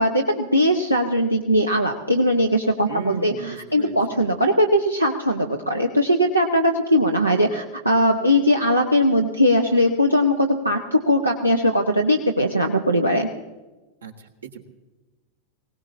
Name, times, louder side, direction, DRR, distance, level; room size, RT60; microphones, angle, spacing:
voice 1, 0.0-13.3, equal, 85° right, 2 dB, 1.0 m, -20 dB
voice 2, 2.9-4.2 14.0-14.1 14.4-14.7, right 5 dB, 70° right, 3 dB, 1.8 m, -34 dB
24.5 x 18.0 x 2.8 m, 1.2 s
figure-of-eight pair, 90°, 0 cm